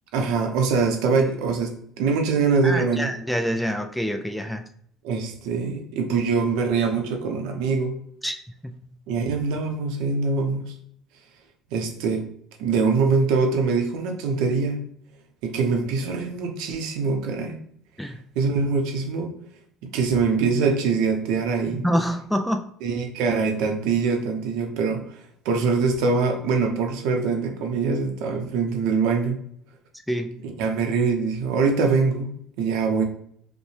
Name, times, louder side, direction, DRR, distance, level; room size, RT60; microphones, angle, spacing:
voice 1, 0.1-3.1 5.0-8.0 9.1-10.7 11.7-12.3 12.6-14.8 15.4-17.6 18.3-19.3 19.8-21.8 22.8-25.2 25.4-29.4 30.4-32.3 32.6-33.0, right 4 dB, 80° right, 4 dB, 0.8 m, -23 dB
voice 2, 2.6-4.7 8.2-8.3 8.6-8.7 18.0-18.2 21.7-22.6 30.1-30.4, equal, ahead, 6 dB, 0.3 m, -26 dB
5.2 x 2.2 x 3.3 m, 0.66 s
cardioid pair, 135°, 0 cm